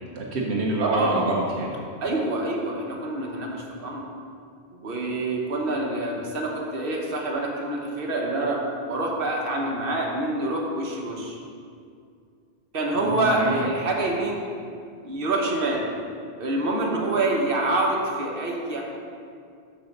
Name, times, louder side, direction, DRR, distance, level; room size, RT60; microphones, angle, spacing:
voice 1, 0.2-1.7 12.9-13.5, right 2 dB, 80° right, -2 dB, 1.1 m, -27 dB
voice 2, 0.8-1.4 2.0-4.0 4.7-8.6 8.9-11.4 12.7-14.4 15.0-15.8 16.4-18.8, right 2 dB, 60° right, -1 dB, 1.4 m, -26 dB
6.7 x 5.6 x 6.6 m, 2.3 s
omnidirectional pair, 1.1 m